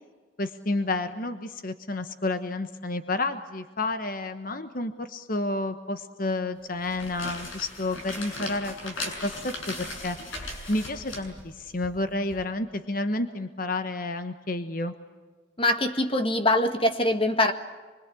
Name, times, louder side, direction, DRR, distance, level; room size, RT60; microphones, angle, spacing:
voice 1, 0.4-8.9 9.2-14.9, left 2 dB, 45° left, 9 dB, 1.2 m, -30 dB
sound 1, 6.7-12.4, left 2 dB, 85° left, 6.9 m, -38 dB
voice 2, 15.6-17.5, left 1 dB, 25° left, 8 dB, 1.8 m, -23 dB
26.0 x 24.5 x 8.5 m, 1.4 s
head